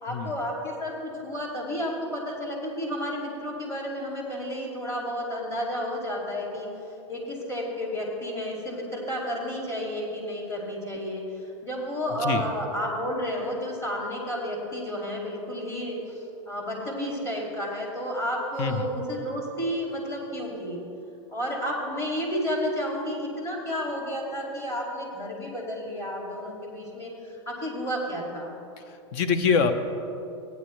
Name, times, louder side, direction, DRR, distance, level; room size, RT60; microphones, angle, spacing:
voice 1, 0.0-6.7 7.1-20.8 21.3-28.5, equal, 15° left, -2 dB, 2.4 m, -31 dB
voice 2, 28.8-29.7, left 5 dB, 55° left, 9 dB, 0.8 m, -25 dB
15.0 x 9.5 x 3.2 m, 2.8 s
hypercardioid pair, 120°, 15 cm